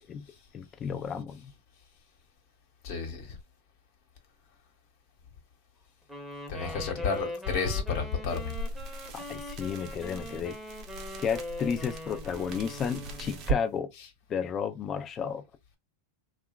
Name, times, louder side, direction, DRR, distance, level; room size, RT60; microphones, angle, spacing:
voice 1, 0.5-1.5 6.6-7.1 9.1-10.5 11.2-13.9 14.3-15.4, left 7 dB, 30° left, 0.5 m, -32 dB
voice 2, 2.8-3.4 6.5-8.5 14.0-14.1, left 5 dB, 60° left, 1.2 m, -31 dB
Wind instrument woodwind instrument, 6.1-13.5, left 1 dB, ahead, 0.9 m, -41 dB
sound 1, 8.3-13.6, right 4 dB, 45° right, 0.8 m, -38 dB
2.8 x 2.4 x 2.3 m
hypercardioid pair, 105°, 0 cm